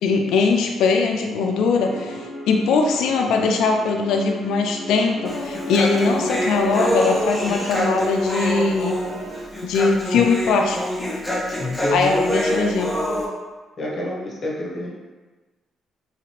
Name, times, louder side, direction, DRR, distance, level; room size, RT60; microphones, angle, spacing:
voice 1, 0.0-9.0 9.6-10.8 11.9-12.9, left 4 dB, 85° left, 3 dB, 0.3 m, -20 dB
sound 1, 1.7-9.4, equal, 65° right, 0.6 m, -36 dB
Human voice, 5.2-13.3, equal, 10° left, 0.8 m, -25 dB
voice 2, 11.6-12.8 13.8-14.9, left 1 dB, 45° left, -3 dB, 0.8 m, -28 dB
3.2 x 2.8 x 2.9 m, 1.2 s
cardioid pair, 90°, 0 cm